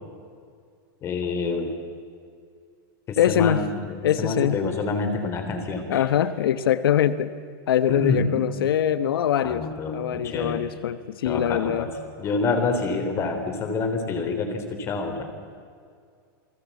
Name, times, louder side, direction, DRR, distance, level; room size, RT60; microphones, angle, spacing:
voice 1, 1.0-1.7 3.1-6.0 7.9-8.4 9.4-10.6 11.2-11.9 12.2-15.2, left 3 dB, 20° left, 6 dB, 3.6 m, -27 dB
voice 2, 3.2-3.6 4.0-4.6 5.9-7.3 7.7-9.7 9.9-11.9, left 10 dB, 90° left, 13 dB, 1.1 m, -23 dB
29.5 x 20.0 x 8.4 m, 2.2 s
supercardioid pair, 165°, 12 cm